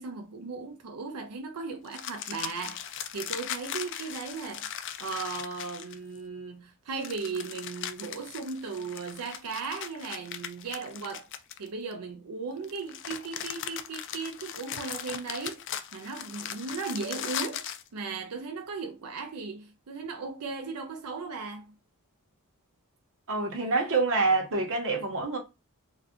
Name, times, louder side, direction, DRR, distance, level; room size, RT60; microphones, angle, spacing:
voice 1, 0.0-4.7 5.0-11.3 11.6-15.6 15.9-17.6 17.9-21.7, right 4 dB, 85° right, 0.5 m, -37 dB
sound 1, 1.9-6.2 7.0-11.9 12.6-17.9, left 10 dB, 55° left, 0.4 m, -38 dB
voice 2, 23.3-25.4, right 3 dB, 60° right, 0.9 m, -26 dB
2.5 x 2.3 x 3.6 m
head